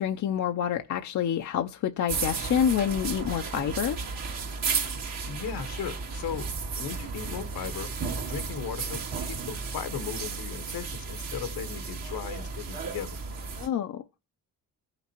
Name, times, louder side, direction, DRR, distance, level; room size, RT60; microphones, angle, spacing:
voice 1, 0.0-4.0 13.6-14.0, left 9 dB, 55° left, 0.6 m, -27 dB
sound 1, 2.1-13.7, right 5 dB, 65° right, 1.7 m, -34 dB
voice 2, 5.2-6.5 6.8-7.9 8.2-13.2, left 8 dB, 75° left, 1.2 m, -37 dB
15.0 x 5.8 x 2.9 m
cardioid pair, 80°, 36 cm